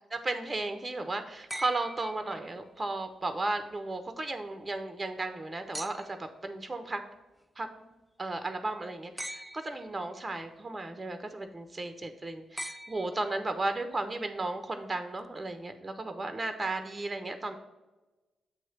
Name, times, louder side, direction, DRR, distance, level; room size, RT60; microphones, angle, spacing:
voice 1, 0.1-7.0 7.6-7.7 8.2-17.5, right 2 dB, 30° right, 7 dB, 0.8 m, -35 dB
sound 1, 1.5-2.9 5.7-6.4 9.2-10.0 12.6-13.6 15.2-15.3, equal, 5° right, 0.4 m, -42 dB
7.2 x 3.1 x 5.8 m, 1.1 s
hypercardioid pair, 45°, 0 cm